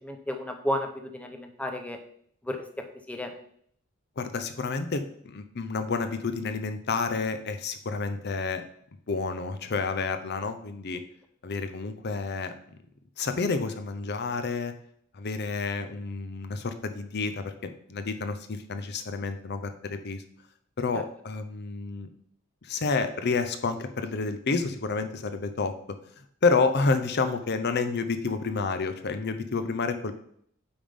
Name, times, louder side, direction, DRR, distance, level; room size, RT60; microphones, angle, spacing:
voice 1, 0.0-2.0 2.4-3.3 20.9-21.0, left 1 dB, 5° left, 5 dB, 0.7 m, -33 dB
voice 2, 4.2-8.6 9.1-11.0 11.4-12.8 13.2-14.7 15.1-20.2 20.8-22.1 22.6-25.7 26.4-30.1, left 4 dB, 50° left, 9 dB, 0.6 m, -29 dB
8.7 x 3.6 x 5.2 m, 0.65 s
head